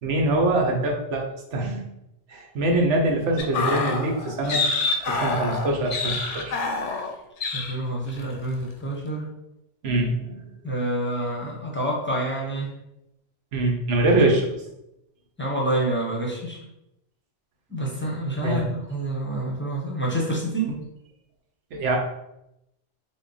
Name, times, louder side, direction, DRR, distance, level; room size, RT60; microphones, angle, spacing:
voice 1, 0.0-1.8 2.3-4.6 5.0-6.5 9.8-10.4 13.5-14.5 18.4-18.6 20.7-20.8 21.7-22.0, right 2 dB, 75° right, 1 dB, 1.1 m, -23 dB
sound 1, 3.4-7.1 7.4-7.7 8.1-8.3, left 3 dB, 75° left, 0.9 m, -27 dB
voice 2, 7.5-9.3 10.6-12.7 15.4-16.6 17.7-20.8, right 1 dB, 10° left, -3 dB, 0.7 m, -27 dB
3.8 x 2.2 x 3.9 m, 0.85 s
omnidirectional pair, 1.2 m